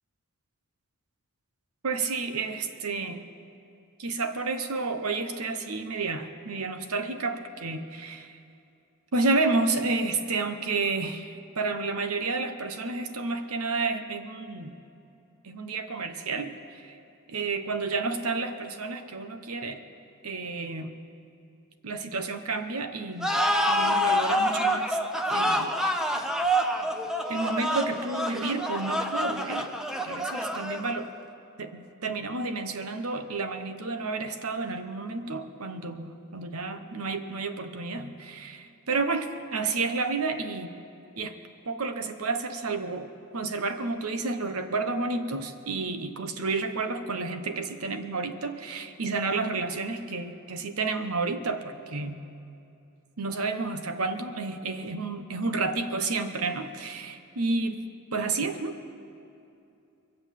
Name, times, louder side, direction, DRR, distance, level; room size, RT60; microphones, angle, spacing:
voice 1, 1.8-3.2 4.0-8.4 9.1-14.7 15.4-17.0 17.3-19.8 20.2-20.9 21.8-23.3 23.7-25.0 25.3-25.7 27.3-29.7 30.0-31.1 31.6-40.7 41.2-41.4 41.7-52.2 53.2-58.8, right 3 dB, 85° right, 8 dB, 1.0 m, -31 dB
sound 1, 23.2-31.1, equal, 5° right, 0.7 m, -27 dB
23.5 x 7.9 x 7.4 m, 2.6 s
head